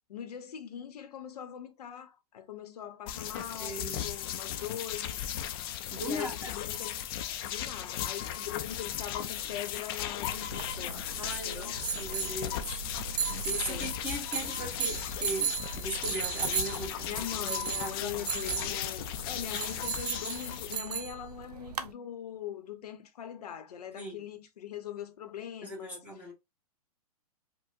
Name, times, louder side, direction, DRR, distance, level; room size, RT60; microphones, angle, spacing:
voice 1, 0.1-5.2 6.0-6.9 7.4-11.1 11.4-11.7 13.7-14.0 17.1-26.1, left 10 dB, 80° left, 0.8 m, -41 dB
sound 1, 3.1-20.8, left 11 dB, 40° left, 0.4 m, -36 dB
voice 2, 3.3-4.1 5.9-6.6 11.2-12.8 13.4-18.3 18.6-18.7 23.9-24.2 25.6-26.3, right 1 dB, 5° right, 1.0 m, -39 dB
sound 2, 10.3-21.9, right 7 dB, 85° right, 0.6 m, -36 dB
4.5 x 2.1 x 2.4 m
hypercardioid pair, 145°, 20 cm